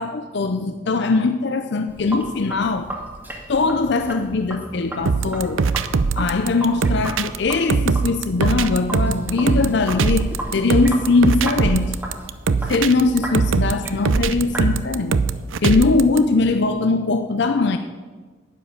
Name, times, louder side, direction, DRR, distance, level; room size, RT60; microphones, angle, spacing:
voice 1, 0.0-2.9 3.5-5.6 6.2-12.0 12.7-15.1 15.6-17.8, left 3 dB, 55° left, 7 dB, 0.6 m, -20 dB
Sink (filling or washing), 1.9-14.7, right 1 dB, 10° right, 1.9 m, -35 dB
sound 1, 5.1-16.2, right 4 dB, 80° right, 0.6 m, -21 dB
10.0 x 10.0 x 6.9 m, 1.4 s
head